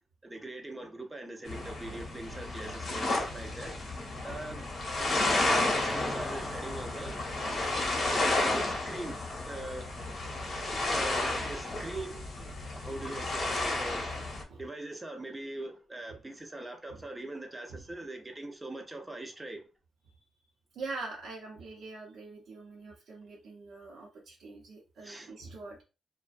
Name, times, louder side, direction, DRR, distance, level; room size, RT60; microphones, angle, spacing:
voice 1, 0.2-3.8 4.2-4.7 5.0-7.2 8.2-9.2 9.4-9.9 10.9-14.1 14.6-19.6 25.0-25.3, right 2 dB, 15° right, 0.5 m, -42 dB
sound 1, 1.5-14.4, left 2 dB, 50° left, 0.8 m, -32 dB
voice 2, 20.7-25.8, right 3 dB, 75° right, 0.7 m, -44 dB
2.4 x 2.2 x 2.4 m
cardioid pair, 115°, 0 cm